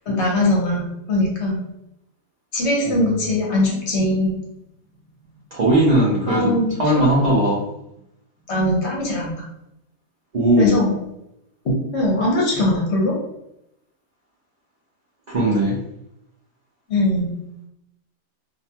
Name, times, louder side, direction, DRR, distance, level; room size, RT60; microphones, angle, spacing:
voice 1, 0.1-1.6 2.5-4.4 6.3-7.1 8.5-9.5 10.6-11.0 11.6-13.1 16.9-17.4, left 1 dB, 60° left, -3 dB, 0.9 m, -21 dB
voice 2, 5.5-7.7 10.3-10.8 15.3-15.8, right 1 dB, 80° right, -5 dB, 0.3 m, -18 dB
2.5 x 2.1 x 2.7 m, 0.83 s
omnidirectional pair, 1.5 m